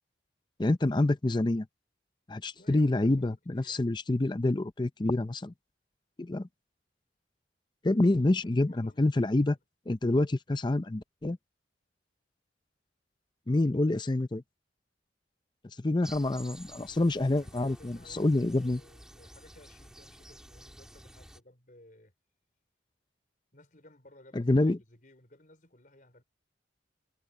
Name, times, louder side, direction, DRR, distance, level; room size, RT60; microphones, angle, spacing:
voice 1, 0.6-1.7 2.3-5.5 6.2-6.5 7.8-9.5 9.9-11.4 13.5-14.4 15.8-18.8 24.3-24.8, left 2 dB, 25° left, 0.5 m, -27 dB
voice 2, 2.5-3.9 8.1-9.6 17.2-22.1 23.5-26.2, left 1 dB, 45° left, 4.9 m, -58 dB
sound 1, 16.0-21.4, equal, 5° right, 3.1 m, -51 dB
head